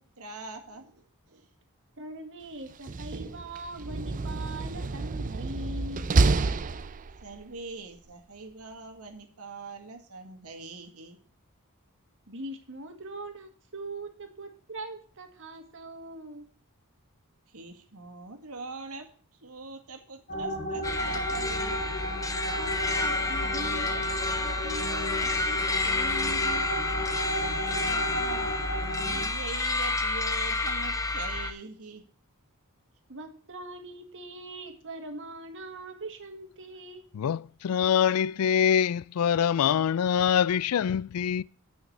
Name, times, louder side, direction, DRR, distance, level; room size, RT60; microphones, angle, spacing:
voice 1, 0.2-1.5 7.2-11.2 17.5-19.1 19.4-21.9 27.9-32.0, right 3 dB, 80° right, 1.9 m, -43 dB
voice 2, 2.0-6.1 12.3-16.5 22.6-26.6 33.1-37.1, right 1 dB, 60° right, 1.9 m, -41 dB
Slam, 2.7-7.4, right 3 dB, 35° right, 0.5 m, -28 dB
sound 1, 20.3-29.3, equal, 45° left, 2.9 m, -34 dB
sound 2, 20.8-31.5, left 3 dB, 15° left, 0.9 m, -30 dB
voice 3, 37.1-41.4, left 8 dB, 75° left, 0.3 m, -24 dB
9.5 x 6.4 x 6.5 m
head